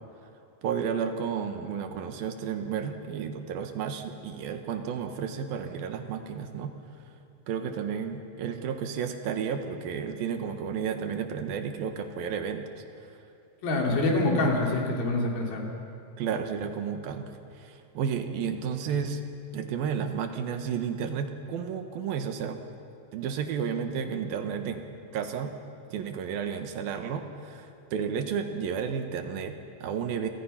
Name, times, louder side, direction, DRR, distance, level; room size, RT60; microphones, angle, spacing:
voice 1, 0.6-6.8 7.5-12.7 13.0-13.1 13.9-14.2 16.2-19.3 19.5-22.6 23.1-25.5 25.9-30.3, right 7 dB, 80° right, 7 dB, 3.3 m, -32 dB
voice 2, 13.6-15.7, left 2 dB, 85° left, 0 dB, 5.1 m, -25 dB
28.5 x 25.0 x 5.9 m, 2.7 s
omnidirectional pair, 4.1 m